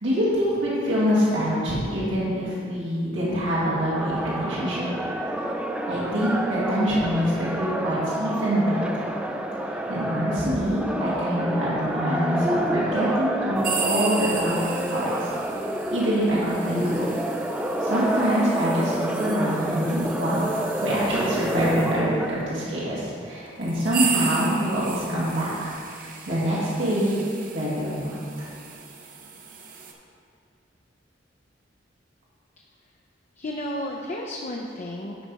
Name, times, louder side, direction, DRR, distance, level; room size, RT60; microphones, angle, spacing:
voice 1, 0.0-4.9 5.9-8.8 9.7-14.6 14.9-15.3 15.9-17.1 17.8-20.5 20.8-27.2 27.5-28.5, equal, 90° right, -9 dB, 2.2 m, -25 dB
sound 1, 3.9-22.3, right 1 dB, 5° right, 0.4 m, -29 dB
sound 2, 13.6-22.0 22.8-22.9 23.6-29.9, right 5 dB, 45° right, 0.8 m, -35 dB
voice 2, 33.4-35.2, left 1 dB, 40° left, -1 dB, 0.6 m, -33 dB
12.0 x 4.1 x 4.7 m, 2.3 s
head